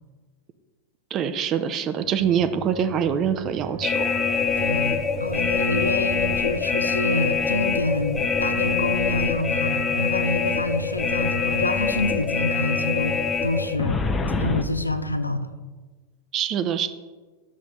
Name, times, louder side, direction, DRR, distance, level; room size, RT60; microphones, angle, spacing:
voice 1, 1.1-4.2 16.3-16.9, right 8 dB, 30° right, 10 dB, 0.5 m, -24 dB
sound 1, 1.9-15.2, right 3 dB, 90° right, 2.2 m, -38 dB
sound 2, 3.8-14.6, left 5 dB, 20° left, 0.7 m, -25 dB
voice 2, 4.6-14.0 14.4-15.5, left 2 dB, 85° left, 11 dB, 0.4 m, -27 dB
11.5 x 7.2 x 3.0 m, 1.3 s
figure-of-eight pair, 90°, 0 cm